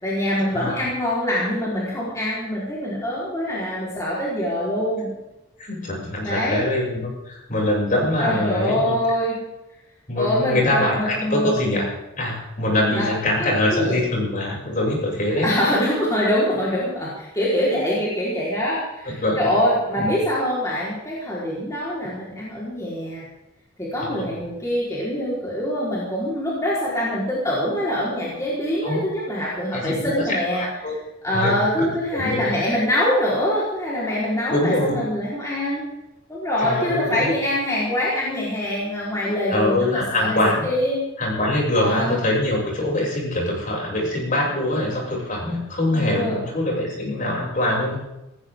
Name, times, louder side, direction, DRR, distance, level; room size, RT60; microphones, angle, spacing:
voice 1, 0.0-5.1 6.2-6.6 8.2-9.4 10.2-11.6 12.9-13.1 13.4-14.0 15.3-23.3 23.8-30.6 31.2-35.9 36.3-41.0 41.8-42.2 45.9-46.4, left 1 dB, 15° left, -7 dB, 4.5 m, -24 dB
voice 2, 5.6-8.9 10.1-11.9 12.2-15.5 19.2-19.6 20.0-20.1 24.0-24.2 28.8-29.0 29.7-31.0 31.3-32.7 34.5-35.0 36.6-37.3 39.5-40.7 41.2-48.0, left 1 dB, 40° left, -3 dB, 7.2 m, -23 dB
18.0 x 17.5 x 3.8 m, 0.92 s
head